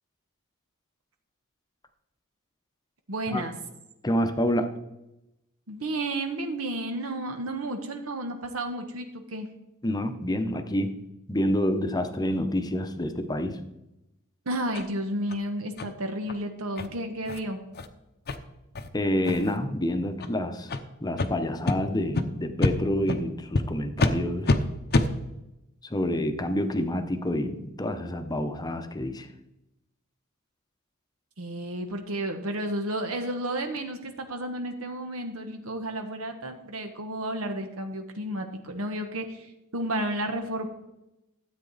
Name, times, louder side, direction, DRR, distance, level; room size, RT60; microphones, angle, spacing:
voice 1, 3.1-3.6 5.7-9.5 14.4-17.6 31.4-40.7, right 1 dB, 75° right, 6 dB, 1.1 m, -32 dB
voice 2, 4.0-4.7 9.8-10.9 11.3-13.6 18.9-20.7 21.0-24.6 25.8-29.3, left 1 dB, 20° left, 8 dB, 0.8 m, -28 dB
sound 1, 14.7-14.9 15.3-15.4 15.8-15.9 16.3-16.4 16.8-16.9 17.3-17.4 17.7-17.9 18.3-18.4 18.8-18.9 19.2-19.6 20.2-20.3 20.7-20.8 21.2-21.3 21.7-21.8 22.2-22.3 22.6-22.7 23.1-23.2 23.5-23.6 24.0-24.1 24.5-24.6 24.9-25.1, left 2 dB, 50° left, 0.7 m, -25 dB
13.0 x 8.1 x 4.0 m, 0.92 s
head